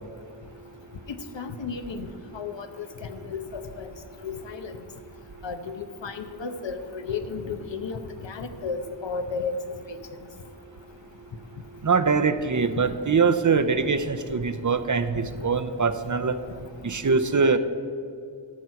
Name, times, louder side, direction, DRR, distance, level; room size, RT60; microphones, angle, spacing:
voice 1, 1.1-3.9 4.2-4.8 5.4-8.0 8.2-9.5 9.9-10.0, left 5 dB, 70° left, 8 dB, 0.9 m, -34 dB
voice 2, 11.8-16.3 16.8-17.6, right 5 dB, 40° right, 10 dB, 0.6 m, -23 dB
13.5 x 6.4 x 5.8 m, 2.5 s
wide cardioid pair, 55°, 46 cm